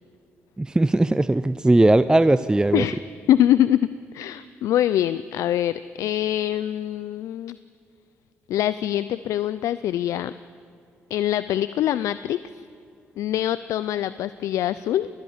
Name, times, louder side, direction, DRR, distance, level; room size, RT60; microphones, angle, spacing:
voice 1, 0.6-2.8, right 2 dB, 15° right, 13 dB, 0.5 m, -18 dB
voice 2, 3.3-7.6 8.5-10.3 11.1-12.6 13.2-15.1, left 12 dB, 80° left, 15 dB, 0.4 m, -24 dB
20.5 x 19.5 x 7.3 m, 2.4 s
supercardioid pair, 65°, 5 cm